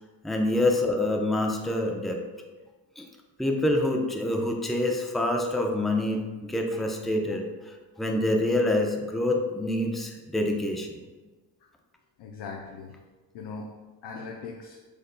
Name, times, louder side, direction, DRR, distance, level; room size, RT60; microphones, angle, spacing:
voice 1, 0.2-2.2 3.0-3.1 3.4-7.5 8.0-11.0, left 1 dB, ahead, 1 dB, 0.6 m, -26 dB
voice 2, 12.2-13.0 13.3-13.7 14.0-14.8, left 4 dB, 65° left, 1 dB, 0.6 m, -39 dB
6.6 x 3.6 x 2.2 m, 1.2 s
supercardioid pair, 55°, 44 cm